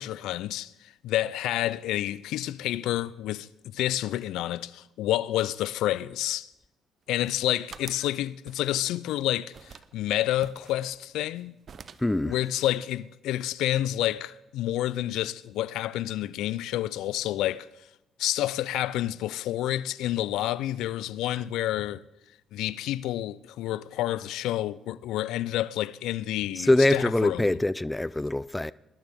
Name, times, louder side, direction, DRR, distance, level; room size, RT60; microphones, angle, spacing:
voice 1, 0.0-6.5 7.1-11.6 12.2-17.7 18.2-22.0 22.5-27.6, left 14 dB, 80° left, 0.4 m, -29 dB
sound 1, 7.1-8.1 8.5-9.2 9.5-9.9 10.4-11.4 11.7-12.2, right 6 dB, 55° right, 0.7 m, -47 dB
voice 2, 12.0-12.3 26.6-28.7, left 1 dB, 10° left, 0.4 m, -24 dB
20.0 x 11.5 x 3.6 m
supercardioid pair, 65°, 0 cm